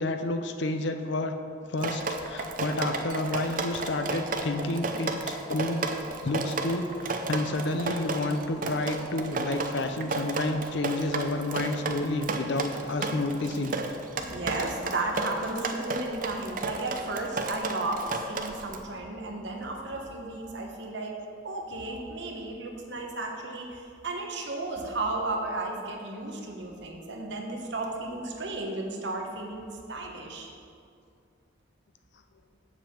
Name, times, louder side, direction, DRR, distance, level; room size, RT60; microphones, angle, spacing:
voice 1, 0.0-1.4 1.7-5.9 6.2-13.8, left 2 dB, 65° left, 7 dB, 0.6 m, -30 dB
Drip, 1.8-18.8, right 3 dB, 45° right, 0.6 m, -33 dB
voice 2, 14.2-21.2 21.4-30.5, right 2 dB, 60° right, 1 dB, 1.2 m, -34 dB
7.2 x 5.4 x 7.4 m, 2.4 s
head